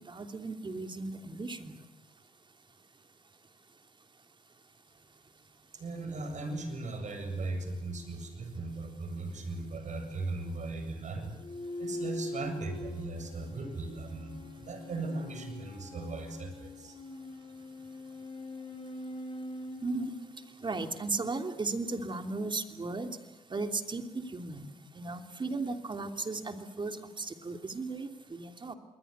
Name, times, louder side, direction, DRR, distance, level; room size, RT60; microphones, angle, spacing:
voice 1, 0.1-1.8 19.8-20.1 20.6-23.1 23.5-24.7 24.9-28.7, right 3 dB, 30° right, 6 dB, 3.0 m, -36 dB
voice 2, 5.7-11.4 11.8-17.0, right 2 dB, 55° right, 7 dB, 7.7 m, -38 dB
sound 1, 11.3-21.0, left 2 dB, 35° left, 7.3 m, -43 dB
28.0 x 21.5 x 8.2 m, 1.1 s
supercardioid pair, 70°, 15 cm